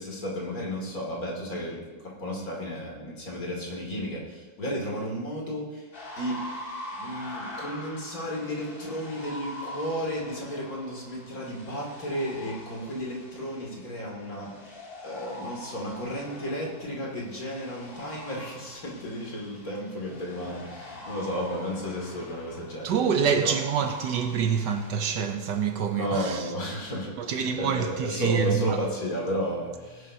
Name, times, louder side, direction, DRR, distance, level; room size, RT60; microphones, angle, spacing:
voice 1, 0.0-5.9 6.2-6.4 7.0-22.9 23.4-23.6 25.9-30.1, equal, 50° left, 3.0 m, -33 dB
sound 1, 5.9-25.7, left 1 dB, 30° left, 1.7 m, -44 dB
voice 2, 22.8-26.5 27.2-28.8, right 7 dB, 70° right, 1.3 m, -26 dB
19.0 x 11.0 x 2.8 m
omnidirectional pair, 2.1 m